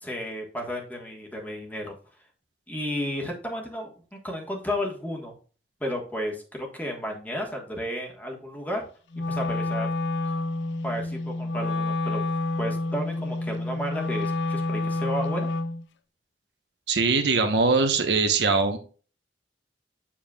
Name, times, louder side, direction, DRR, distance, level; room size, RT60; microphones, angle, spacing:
voice 1, 0.0-1.9 2.7-5.3 5.8-8.8 9.3-9.9 10.8-12.2 12.6-15.5, equal, 10° left, 0 dB, 1.4 m, -32 dB
Wind instrument woodwind instrument, 9.1-15.9, left 2 dB, 85° left, 0.5 m, -28 dB
voice 2, 16.9-18.8, right 4 dB, 75° right, 5 dB, 1.0 m, -22 dB
7.3 x 6.9 x 2.4 m, 0.38 s
head